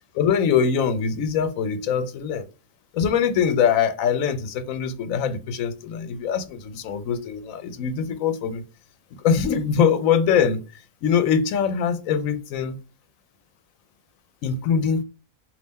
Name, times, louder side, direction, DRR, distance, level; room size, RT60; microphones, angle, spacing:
voice 1, 0.1-2.4 2.9-8.6 9.2-12.8 14.4-15.0, left 7 dB, 80° left, 1.0 m, -23 dB
3.5 x 2.6 x 4.0 m
omnidirectional pair, 1.4 m